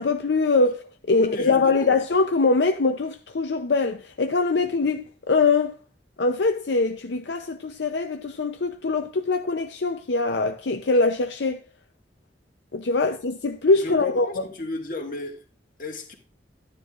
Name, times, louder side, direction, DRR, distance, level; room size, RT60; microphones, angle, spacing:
voice 1, 0.0-5.8 6.2-11.6 12.7-14.4, left 3 dB, 75° left, 0.6 m, -23 dB
voice 2, 1.2-1.9 13.7-15.4 15.8-16.1, left 1 dB, 45° left, 1.9 m, -34 dB
12.0 x 9.7 x 2.4 m
head